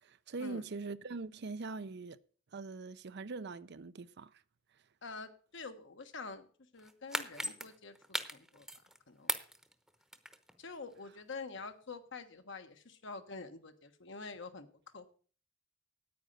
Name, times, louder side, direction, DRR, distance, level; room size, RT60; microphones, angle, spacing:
voice 1, 0.0-2.2 2.5-4.3, right 3 dB, 60° right, 0.6 m, -42 dB
voice 2, 5.0-6.5 6.7-8.7 9.1-9.3 10.6-15.2, left 4 dB, 65° left, 1.3 m, -47 dB
sound 1, 6.8-9.0 9.3-10.5 10.9-11.0, right 1 dB, ahead, 0.9 m, -38 dB
9.4 x 9.0 x 6.7 m
head